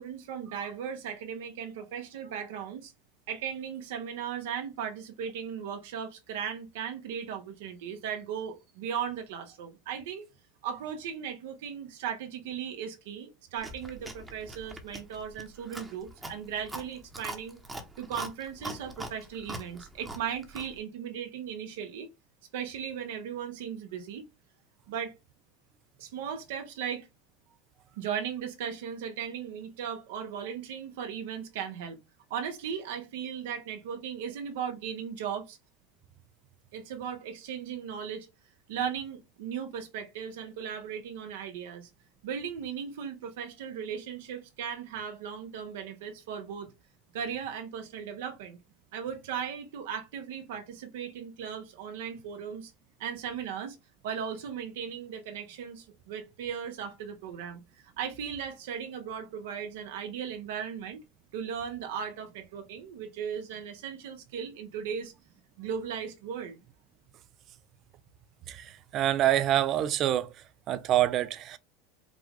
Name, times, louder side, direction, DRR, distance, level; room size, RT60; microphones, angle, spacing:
voice 1, 0.0-2.9 3.3-10.2 10.6-17.6 18.0-22.1 22.5-24.2 24.9-25.1 26.0-27.1 28.0-32.0 32.3-35.6 36.7-38.3 38.7-41.9 42.2-46.7 47.1-48.6 48.9-52.7 53.0-53.8 54.0-61.0 61.3-65.1 65.6-66.6, right 8 dB, 80° right, 1.3 m, -37 dB
Chewing mastication, 13.6-20.8, right 1 dB, 10° right, 1.1 m, -43 dB
voice 2, 68.5-70.3 70.7-71.6, right 12 dB, 40° right, 0.5 m, -26 dB
4.8 x 2.5 x 3.6 m
supercardioid pair, 125°, 0 cm